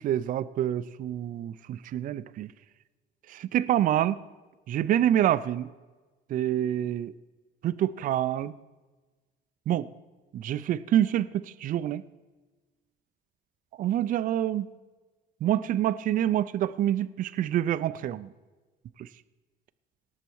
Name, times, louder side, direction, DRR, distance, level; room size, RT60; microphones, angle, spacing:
voice 1, 0.0-2.5 3.3-4.2 4.7-5.7 6.3-7.1 7.6-8.5 9.7-9.9 10.3-12.0 13.8-14.7 15.4-18.3 19.0-19.1, right 11 dB, 55° right, 15 dB, 0.4 m, -27 dB
18.5 x 6.7 x 4.6 m, 1.3 s
cardioid pair, 110°, 17 cm